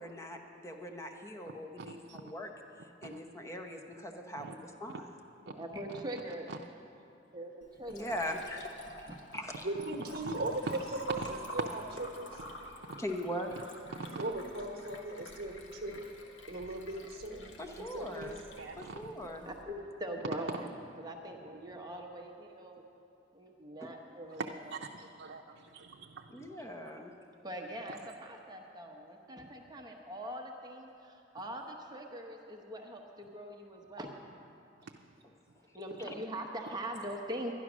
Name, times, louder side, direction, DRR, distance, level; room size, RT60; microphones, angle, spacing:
voice 1, 0.0-2.5 3.0-5.1 7.9-8.7 9.3-9.7 13.0-13.5 17.6-18.4 18.8-19.5 23.8-23.9 26.3-27.1 36.0-36.1, equal, 15° left, 4 dB, 0.9 m, -41 dB
voice 2, 1.8-2.2 3.1-3.2 4.4-4.5 5.5-5.6 6.5-6.6 10.3-10.8 11.1-11.4 12.9-13.0 13.9-14.2 18.5-19.1 20.3-20.4 24.4-26.5, right 4 dB, 75° right, 2 dB, 0.6 m, -43 dB
voice 3, 5.5-6.5 7.3-8.1 9.1-9.2 19.4-19.7 20.0-20.7 21.0-22.8 23.3-24.6 27.4-34.2 35.7-37.5, right 1 dB, 20° right, 2 dB, 0.9 m, -42 dB
Liquid, 7.6-19.6, equal, 75° left, 1.3 m, -48 dB
voice 4, 9.6-12.3 14.0-16.1 16.5-18.3, right 2 dB, 55° right, 3 dB, 1.2 m, -38 dB
11.0 x 11.0 x 6.2 m, 2.7 s
head